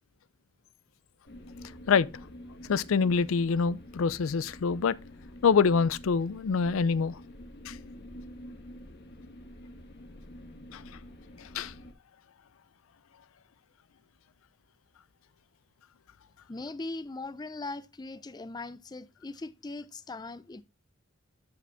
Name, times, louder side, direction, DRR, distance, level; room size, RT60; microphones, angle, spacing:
sound 1, 1.2-11.9, left 1 dB, 55° left, 1.3 m, -48 dB
voice 1, 2.7-5.0 5.4-7.2 7.7-7.8 10.7-10.8 11.5-11.7, left 5 dB, 75° left, 0.4 m, -25 dB
voice 2, 16.5-20.6, left 2 dB, 20° left, 0.4 m, -40 dB
12.5 x 5.0 x 3.4 m
head